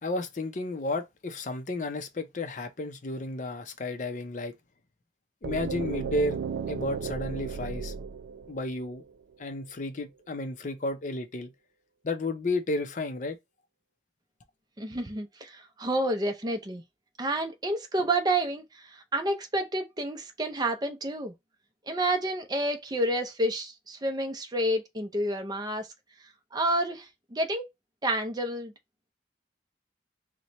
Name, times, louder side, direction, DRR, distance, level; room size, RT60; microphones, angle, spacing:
voice 1, 0.0-4.5 5.4-6.4 6.7-7.9 8.5-9.0 9.4-11.5 12.0-13.4, left 2 dB, 45° left, 0.5 m, -32 dB
sound 1, 5.4-9.3, right 6 dB, 70° right, 0.3 m, -35 dB
voice 2, 14.8-16.8 17.2-21.3 21.9-25.9 26.5-27.7 28.0-28.7, right 1 dB, 25° right, 0.5 m, -29 dB
4.2 x 2.2 x 2.9 m
head